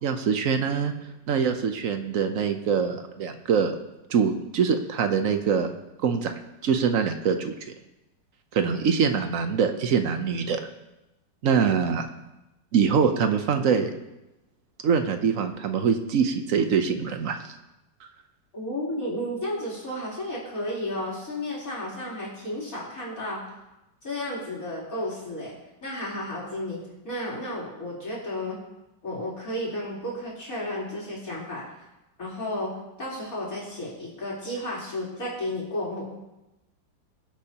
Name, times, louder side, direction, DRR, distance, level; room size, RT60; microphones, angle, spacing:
voice 1, 0.0-0.9 1.3-3.8 4.1-5.7 6.0-6.3 6.6-7.5 8.5-10.6 11.4-12.1 12.7-13.9 14.8-17.5, right 6 dB, 55° right, 7 dB, 1.1 m, -24 dB
voice 2, 18.5-23.4 24.0-25.5 25.8-28.6 29.0-31.7 32.2-36.1, left 1 dB, 50° left, -7 dB, 4.4 m, -32 dB
20.5 x 8.2 x 3.0 m, 0.96 s
omnidirectional pair, 1.9 m